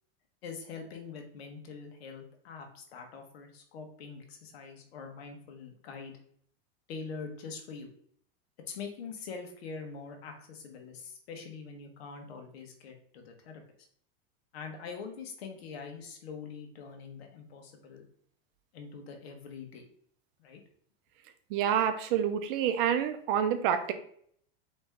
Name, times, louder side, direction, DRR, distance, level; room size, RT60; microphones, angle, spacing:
voice 1, 0.4-6.1 6.9-7.9 8.7-13.6 14.5-18.1 18.7-19.9 20.4-20.6, left 5 dB, 85° left, 3 dB, 1.3 m, -44 dB
voice 2, 21.5-23.9, right 9 dB, 60° right, 9 dB, 0.7 m, -28 dB
4.2 x 3.1 x 3.6 m, 0.62 s
supercardioid pair, 135°, 30 cm